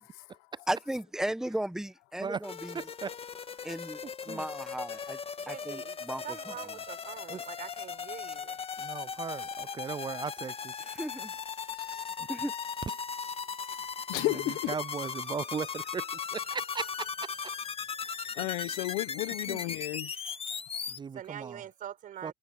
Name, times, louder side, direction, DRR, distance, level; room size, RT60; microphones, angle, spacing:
voice 1, 0.7-2.8 3.6-5.2 5.5-6.7 10.8-11.3 12.3-12.5, right 1 dB, 5° right, 1.4 m, -36 dB
sound 1, 2.4-21.0, left 6 dB, 35° left, 1.8 m, -38 dB
voice 2, 2.7-3.2 3.6-3.7 4.3-4.4 7.3-7.4 8.8-10.7 12.2-12.3 14.1-17.3 18.4-18.5 19.5-19.6 20.9-21.6 22.2-22.3, right 6 dB, 30° right, 0.5 m, -38 dB
voice 3, 5.4-8.6 21.1-22.3, right 10 dB, 60° right, 4.8 m, -44 dB
voice 4, 14.1-14.7 18.4-20.1, left 21 dB, 85° left, 1.2 m, -32 dB
supercardioid pair, 70°, 16 cm